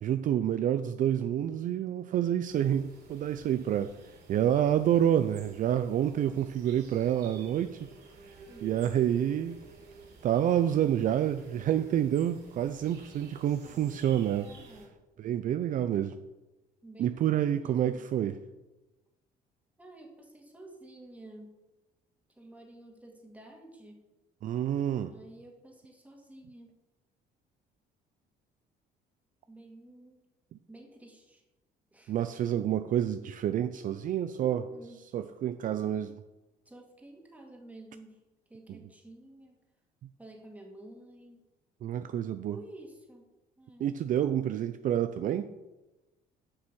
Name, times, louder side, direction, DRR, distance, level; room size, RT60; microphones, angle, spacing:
voice 1, 0.0-3.9 4.3-7.9 8.6-9.6 10.2-14.5 15.2-16.2 17.0-18.4 24.4-25.1 32.1-34.6 35.1-36.2 41.8-42.6 43.8-45.5, right 10 dB, 50° right, 10 dB, 0.4 m, -28 dB
sound 1, 2.5-14.9, right 4 dB, 70° right, 3.6 m, -53 dB
voice 2, 8.5-8.9 13.6-15.0 16.8-18.0 19.8-21.6 22.3-24.0 25.1-26.8 29.5-30.2 30.7-31.4 31.9-32.2 34.4-35.0 36.7-38.2 38.5-39.6 40.2-41.4 42.5-43.3 43.6-43.9, right 1 dB, 10° right, 1 dB, 2.1 m, -51 dB
8.1 x 6.1 x 6.0 m, 1.1 s
cardioid pair, 110°, 17 cm